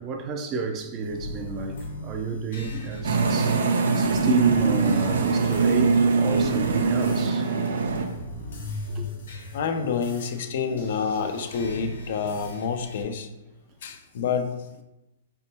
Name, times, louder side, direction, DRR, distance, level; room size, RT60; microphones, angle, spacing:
voice 1, 0.0-7.5 8.9-9.0 10.7-10.8, right 4 dB, 30° right, 0.5 m, -31 dB
sound 1, 1.0-13.0, left 1 dB, 80° left, 1.5 m, -39 dB
sound 2, 3.0-8.1, right 4 dB, 85° right, 0.5 m, -22 dB
voice 2, 9.5-13.3 13.8-14.6, left 6 dB, 65° left, 0.5 m, -28 dB
4.2 x 3.4 x 2.8 m
hypercardioid pair, 140°, 0 cm